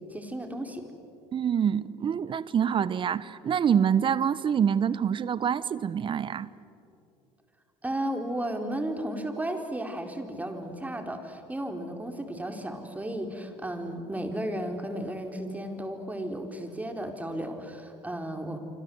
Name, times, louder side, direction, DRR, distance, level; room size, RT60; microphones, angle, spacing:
voice 1, 0.1-0.8 7.8-18.6, right 1 dB, 10° right, 4.3 m, -34 dB
voice 2, 1.3-6.5, right 8 dB, 40° right, 1.0 m, -26 dB
26.5 x 26.0 x 8.1 m
hypercardioid pair, 75°, 13 cm